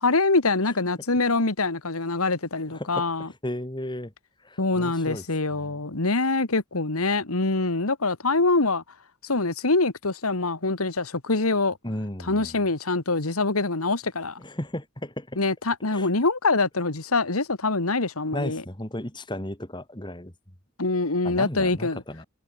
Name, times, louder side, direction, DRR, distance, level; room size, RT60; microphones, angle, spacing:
voice 1, 0.0-3.3 4.6-8.8 9.2-11.8 12.3-14.4 15.4-18.6 20.8-22.0, left 3 dB, 90° left, 2.0 m, -24 dB
voice 2, 2.7-4.1 4.4-5.2 5.5-5.8 11.8-12.6 14.4-15.4 15.9-16.1 18.3-20.3 21.2-22.3, left 1 dB, 20° left, 2.7 m, -34 dB
head